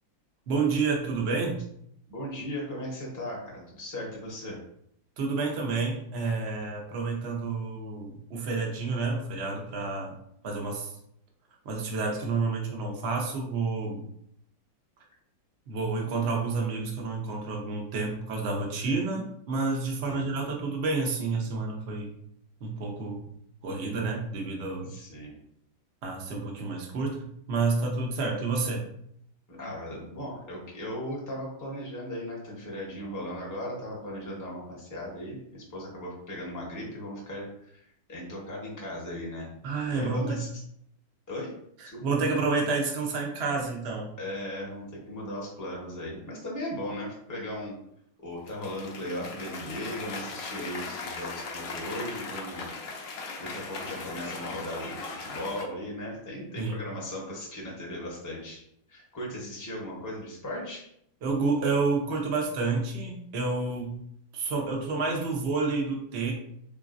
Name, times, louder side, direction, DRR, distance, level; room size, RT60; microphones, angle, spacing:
voice 1, 0.5-1.6 5.2-10.2 10.4-11.0 11.6-14.0 15.7-22.1 22.6-23.3 23.6-24.9 26.0-28.8 39.6-40.4 41.8-44.1 56.6-56.8 61.2-63.9 64.3-66.3, right 4 dB, 70° right, 0 dB, 0.6 m, -29 dB
voice 2, 2.1-4.6 20.0-20.3 24.9-25.4 29.5-39.5 39.9-40.5 41.3-41.5 41.8-42.0 44.2-47.8 48.2-52.7 53.4-58.6 58.9-60.9, left 1 dB, 20° left, -4 dB, 0.5 m, -37 dB
Cheering / Applause, 48.5-55.6, left 4 dB, 80° left, 0.7 m, -38 dB
3.9 x 3.6 x 2.5 m, 0.71 s
omnidirectional pair, 2.2 m